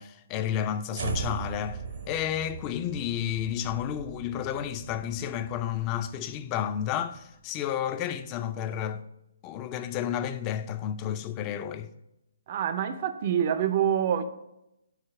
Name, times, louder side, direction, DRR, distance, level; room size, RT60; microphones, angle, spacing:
voice 1, 0.0-1.8 2.1-9.0 9.4-11.9, left 10 dB, 25° left, 0.4 m, -31 dB
sound 1, 0.9-7.2, right 5 dB, 65° right, 0.7 m, -39 dB
voice 2, 12.5-14.2, right 9 dB, 40° right, 0.4 m, -26 dB
4.8 x 4.0 x 5.9 m
hypercardioid pair, 145°, 0 cm